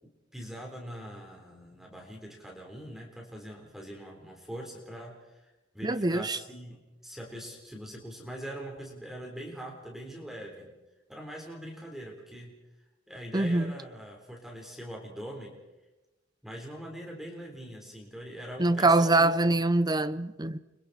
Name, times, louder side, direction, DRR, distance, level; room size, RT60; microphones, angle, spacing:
voice 1, 0.0-5.5 5.7-10.7 11.1-12.5 13.1-15.5 16.4-19.6, equal, ahead, 4.0 m, -42 dB
voice 2, 5.8-6.4 13.3-13.7 18.6-20.6, right 2 dB, 20° right, 0.8 m, -24 dB
30.0 x 25.0 x 4.3 m
head